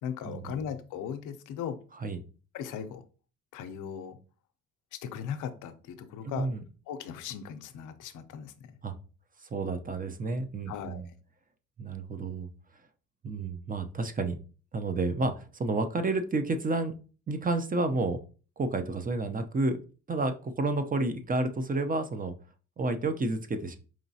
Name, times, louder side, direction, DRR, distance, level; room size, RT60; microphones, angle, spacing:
voice 1, 0.0-1.8 2.5-3.0 3.5-4.2 4.9-6.5 6.9-8.7 10.7-11.1, left 8 dB, 85° left, 9 dB, 0.6 m, -38 dB
voice 2, 6.2-6.6 8.8-8.9 9.4-11.1 11.8-12.5 13.2-14.4 14.7-16.9 17.3-18.2 18.6-19.8 20.1-22.3 22.8-23.8, right 2 dB, 30° right, 8 dB, 0.6 m, -30 dB
5.0 x 3.1 x 2.7 m, 0.36 s
cardioid pair, 90°, 30 cm